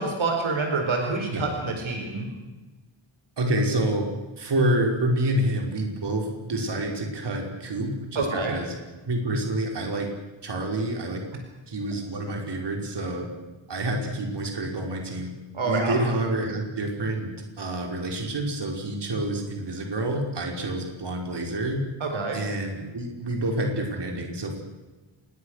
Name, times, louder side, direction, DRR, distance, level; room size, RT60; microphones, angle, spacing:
voice 1, 0.0-2.3 8.1-8.6 15.5-16.0 22.0-22.4, right 3 dB, 75° right, 3 dB, 4.7 m, -27 dB
voice 2, 3.4-4.1 4.4-8.7 9.0-10.1 10.4-11.2 11.7-13.3 13.7-15.3 15.6-17.3 17.6-21.8 22.3-24.6, right 1 dB, 55° right, 2 dB, 5.3 m, -28 dB
27.5 x 22.5 x 6.6 m, 1.2 s
wide cardioid pair, 150°, 48 cm